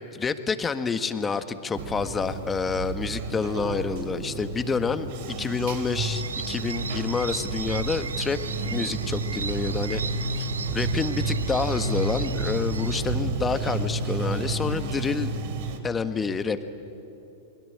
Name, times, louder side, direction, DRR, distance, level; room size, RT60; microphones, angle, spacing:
voice 1, 0.1-5.1 5.4-8.4 8.7-15.3 15.8-16.7, left 5 dB, 20° left, 10 dB, 1.5 m, -28 dB
Bathtub (filling or washing), 1.7-15.8, right 3 dB, 60° right, 2.8 m, -31 dB
sound 1, 6.0-13.0, right 5 dB, 85° right, 0.9 m, -36 dB
28.5 x 22.5 x 8.7 m, 2.9 s
hypercardioid pair, 100°, 0 cm